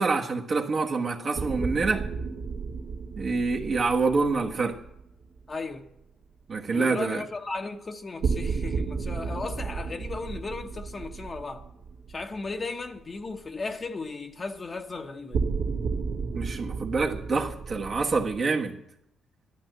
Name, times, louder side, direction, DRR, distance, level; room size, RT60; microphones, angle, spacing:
voice 1, 0.0-2.1 3.2-4.8 6.5-7.2 16.3-18.8, right 4 dB, 45° right, 1.4 m, -26 dB
sound 1, 1.3-5.5 8.2-12.6 12.9-13.0 15.3-18.4, right 5 dB, 70° right, 1.9 m, -33 dB
voice 2, 5.5-5.8 6.7-11.7 12.1-15.5, left 3 dB, 35° left, 1.0 m, -36 dB
12.0 x 11.5 x 7.9 m
cardioid pair, 90°, 0 cm